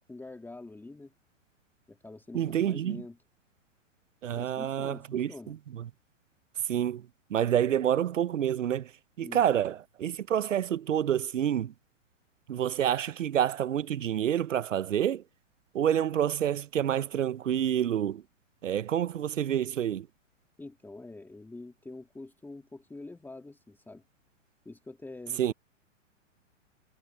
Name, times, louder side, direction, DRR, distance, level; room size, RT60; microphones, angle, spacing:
voice 1, 0.1-1.1 1.9-3.2 4.3-5.5 9.2-9.4 20.6-24.0 24.7-25.5, left 2 dB, 5° left, 2.2 m, -45 dB
voice 2, 2.3-3.0 4.2-5.8 6.7-7.0 7.3-8.9 9.2-11.7 12.5-15.2 15.7-18.2 18.6-20.1 25.4-25.5, right 10 dB, 75° right, 0.9 m, -28 dB
hypercardioid pair, 120°, 38 cm